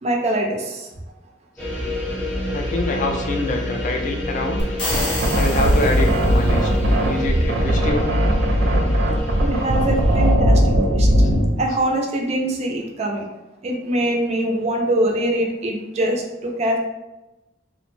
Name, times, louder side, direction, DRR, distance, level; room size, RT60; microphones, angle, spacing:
voice 1, 0.0-0.9 9.4-11.1 11.6-13.3 13.6-16.8, right 1 dB, 35° right, 1 dB, 0.3 m, -23 dB
sound 1, 1.6-10.3, left 1 dB, 5° left, 0.6 m, -28 dB
voice 2, 2.5-4.7 5.3-6.7 7.0-8.1, left 2 dB, 45° left, 2 dB, 0.4 m, -25 dB
sound 2, 4.6-6.7, left 1 dB, 80° left, 0.9 m, -28 dB
sound 3, 4.9-11.5, equal, 90° right, 0.5 m, -18 dB
2.5 x 2.1 x 3.0 m, 1.0 s
head